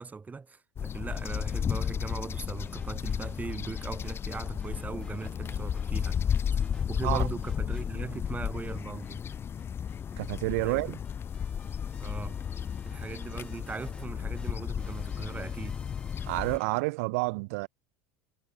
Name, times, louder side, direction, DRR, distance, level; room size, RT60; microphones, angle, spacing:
voice 1, 0.0-6.2 6.9-9.2 10.6-11.0 12.0-12.4 12.8-15.8, right 4 dB, 20° right, 2.5 m, -39 dB
sound 1, 0.8-16.6, left 8 dB, 30° left, 0.7 m, -33 dB
sound 2, 1.1-16.8, left 3 dB, 10° left, 1.5 m, -56 dB
voice 2, 10.2-11.0 16.3-17.7, right 27 dB, 70° right, 0.7 m, -29 dB
supercardioid pair, 100°, 8 cm